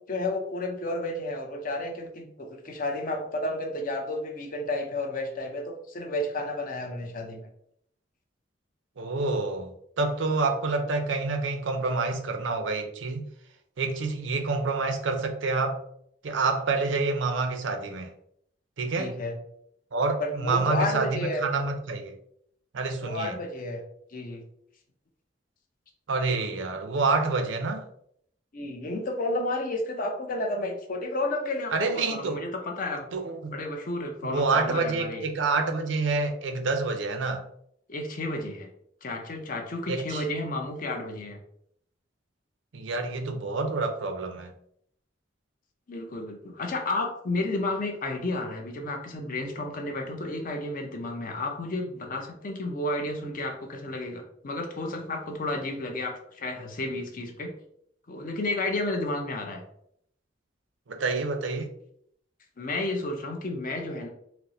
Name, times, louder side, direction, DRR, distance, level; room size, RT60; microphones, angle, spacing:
voice 1, 0.1-7.4 19.0-19.4 20.2-21.4 23.0-23.8 24.1-24.4 28.5-33.1 33.5-35.2 37.9-38.7 39.0-41.4 45.9-57.5 58.1-59.6 62.6-64.1, left 2 dB, 45° left, 3 dB, 0.6 m, -32 dB
voice 2, 9.0-9.7 10.0-13.3 13.8-15.8 16.2-18.1 18.8-19.2 19.9-22.2 22.7-23.4 26.1-27.9 31.7-32.4 33.1-33.5 34.2-37.4 39.9-40.2 42.7-44.5 60.9-61.7, right 3 dB, 85° right, 5 dB, 0.5 m, -27 dB
4.3 x 2.0 x 2.6 m, 0.69 s
head